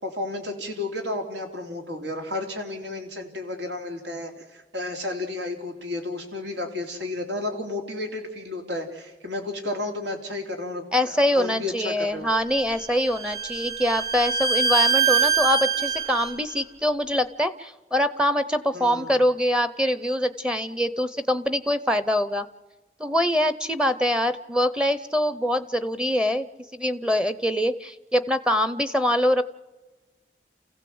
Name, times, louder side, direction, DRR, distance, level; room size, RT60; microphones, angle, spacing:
voice 1, 0.0-12.3 18.7-19.2, left 2 dB, 85° right, 4 dB, 3.5 m, -32 dB
voice 2, 10.9-22.5 23.0-26.5 26.7-29.4, equal, 5° right, 12 dB, 0.7 m, -24 dB
Bowed string instrument, 12.5-16.3, right 5 dB, 60° right, 2.2 m, -24 dB
29.0 x 16.0 x 7.9 m, 1.2 s
head